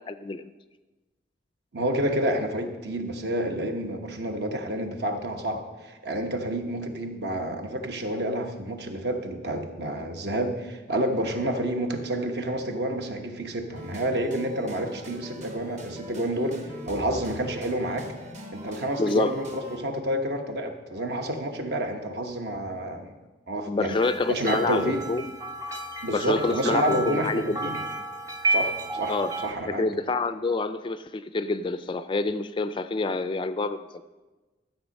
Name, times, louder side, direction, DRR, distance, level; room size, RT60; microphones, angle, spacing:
voice 1, 0.1-0.5 19.0-19.4 23.7-25.3 26.1-27.4 29.1-29.3 29.7-34.0, left 3 dB, 25° left, 12 dB, 0.3 m, -27 dB
voice 2, 1.7-18.2 18.5-23.1 23.5-24.0 24.3-25.0 26.0-27.8 28.5-29.9, right 1 dB, 60° right, 5 dB, 1.1 m, -29 dB
sound 1, 13.7-19.8, equal, 40° right, 1.2 m, -42 dB
sound 2, 23.9-29.5, right 2 dB, 15° right, 1.0 m, -31 dB
13.0 x 7.5 x 5.3 m, 1.2 s
head